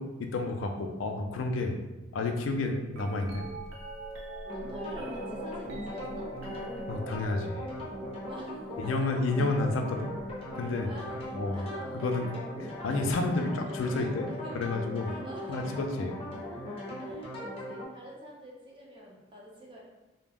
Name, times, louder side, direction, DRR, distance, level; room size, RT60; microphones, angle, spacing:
voice 1, 0.0-1.8 2.1-3.5 6.9-7.6 8.8-10.1 10.6-10.9 11.4-11.6 12.0-12.2 12.6-15.1 15.5-16.2, left 2 dB, 85° left, 4 dB, 0.4 m, -30 dB
voice 2, 2.7-3.0 4.5-6.3 8.3-9.1 10.6-12.1 14.3-14.6 15.0-15.8 17.0-19.8, equal, 25° right, -3 dB, 0.5 m, -47 dB
sound 1, 2.9-13.0 13.9-14.4 15.1-16.1 17.9-18.0, right 2 dB, 75° right, 0.5 m, -45 dB
sound 2, 4.4-17.9, left 1 dB, 30° left, 0.6 m, -39 dB
2.3 x 2.1 x 3.3 m, 1.1 s
head